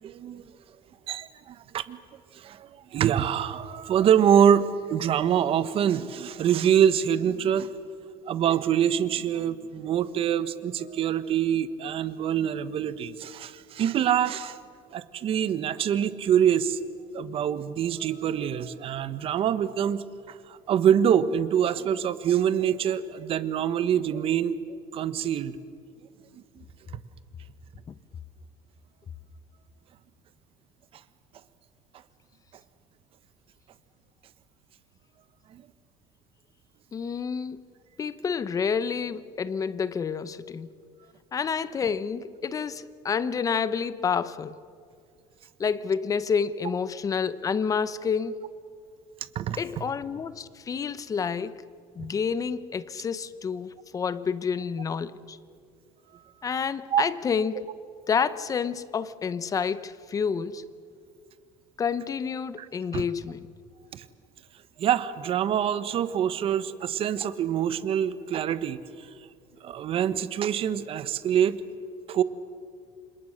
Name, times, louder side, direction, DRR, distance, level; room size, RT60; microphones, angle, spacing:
voice 1, 0.0-0.4 1.1-2.0 2.3-7.7 8.3-14.6 14.9-16.8 17.1-24.6 24.9-25.6 26.6-26.7 35.5-35.6 49.3-49.6 52.0-52.1 56.9-57.1 62.6-62.7 62.9-63.0 63.9-64.0 64.8-69.1 69.6-71.6 72.1-72.2, right 9 dB, 45° right, 1.3 m, -25 dB
voice 2, 36.9-37.6 38.0-40.7 41.3-44.6 45.6-48.5 49.6-51.6 52.0-55.4 56.4-57.7 58.1-60.6 61.8-63.5, left 6 dB, 25° left, 0.9 m, -29 dB
29.5 x 26.0 x 6.6 m
cardioid pair, 145°, 13 cm